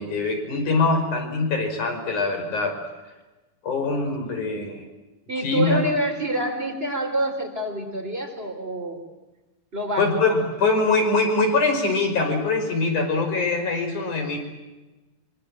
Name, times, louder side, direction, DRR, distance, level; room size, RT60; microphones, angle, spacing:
voice 1, 0.0-2.8 3.6-4.8 5.4-5.8 10.0-14.4, left 3 dB, 70° left, 4 dB, 7.0 m, -23 dB
voice 2, 5.3-9.0 9.7-10.1, right 1 dB, 15° right, 5 dB, 4.6 m, -27 dB
25.5 x 25.5 x 7.7 m, 1.1 s
omnidirectional pair, 3.6 m